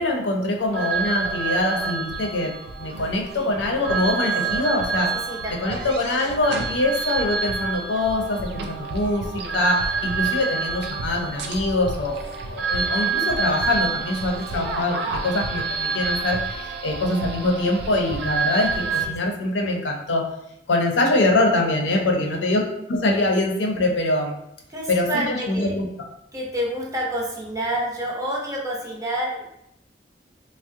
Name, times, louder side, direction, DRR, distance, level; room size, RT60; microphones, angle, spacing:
voice 1, 0.0-5.1 5.6-20.3 20.7-24.4 24.9-25.9, left 2 dB, 90° left, 1 dB, 0.5 m, -24 dB
sound 1, 0.6-19.1, right 4 dB, 65° right, 0.4 m, -28 dB
voice 2, 5.1-5.9 9.3-9.7 14.5-14.8 18.8-19.5 22.2-22.4 24.7-25.8 26.3-29.5, right 1 dB, 20° right, -2 dB, 0.6 m, -29 dB
3.4 x 2.0 x 2.6 m, 0.79 s
head